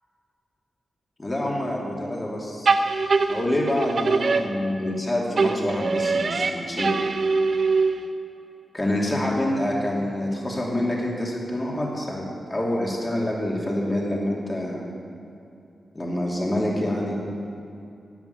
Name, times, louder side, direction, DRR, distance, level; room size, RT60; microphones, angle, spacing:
voice 1, 1.2-2.7 3.3-6.9 8.7-12.2 12.5-14.8 15.9-17.1, left 1 dB, 20° left, -3 dB, 2.7 m, -26 dB
sound 1, 2.6-5.0 5.4-8.2, right 4 dB, 50° right, 0.7 m, -23 dB
11.0 x 8.8 x 9.5 m, 2.6 s
wide cardioid pair, 130°, 0 cm